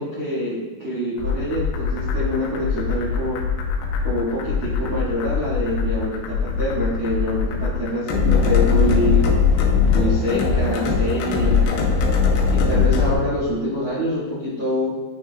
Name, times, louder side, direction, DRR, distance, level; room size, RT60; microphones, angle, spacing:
voice 1, 0.0-3.4 4.0-9.3 9.8-11.9 12.5-14.9, equal, 65° right, -8 dB, 1.2 m, -25 dB
sound 1, 1.2-13.1, left 5 dB, 90° left, 3.3 m, -21 dB
9.4 x 5.9 x 2.3 m, 1.5 s
omnidirectional pair, 5.3 m